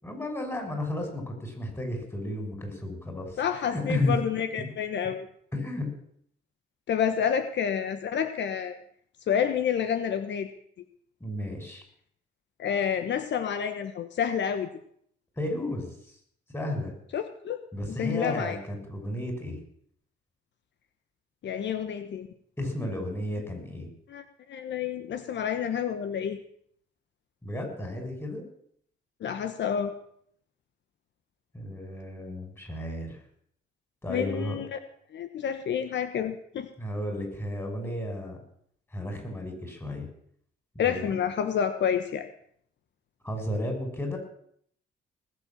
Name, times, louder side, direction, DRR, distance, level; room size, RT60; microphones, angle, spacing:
voice 1, 0.0-4.2 5.5-5.9 11.2-11.8 15.4-16.2 16.5-16.9 17.7-19.6 22.6-23.9 27.4-28.4 31.5-33.2 34.0-34.6 36.8-38.4 38.9-40.1 40.9-41.1 43.2-44.2, left 1 dB, 10° left, 3 dB, 5.8 m, -33 dB
voice 2, 3.4-5.3 6.9-8.8 9.3-10.5 12.6-14.7 17.1-17.6 17.9-18.6 21.4-22.3 24.1-24.2 24.5-26.4 29.2-29.9 34.1-34.8 35.1-36.7 40.8-42.3, left 8 dB, 65° left, 9 dB, 1.2 m, -29 dB
19.5 x 7.7 x 7.2 m, 0.65 s
cardioid pair, 90°, 20 cm